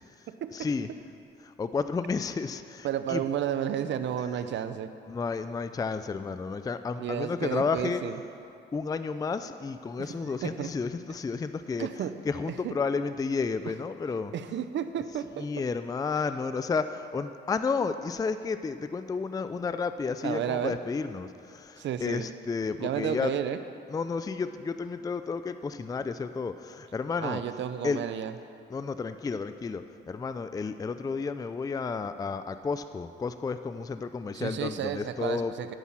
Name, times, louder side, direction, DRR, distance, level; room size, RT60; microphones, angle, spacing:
voice 1, 0.5-0.9 1.6-3.2 5.1-8.0 8.7-11.9 12.2-14.3 15.4-21.3 21.5-21.8 22.0-23.3 23.9-27.4 27.8-28.0 28.7-35.5, left 4 dB, 20° left, 11 dB, 0.4 m, -31 dB
voice 2, 2.8-4.9 7.0-8.2 10.0-10.7 11.8-12.1 12.6-12.7 14.3-15.5 20.2-20.8 21.8-22.3 22.8-23.6 27.2-28.3 34.3-35.7, right 9 dB, 65° right, 11 dB, 0.7 m, -32 dB
12.5 x 5.6 x 7.4 m, 2.6 s
cardioid pair, 90°, 20 cm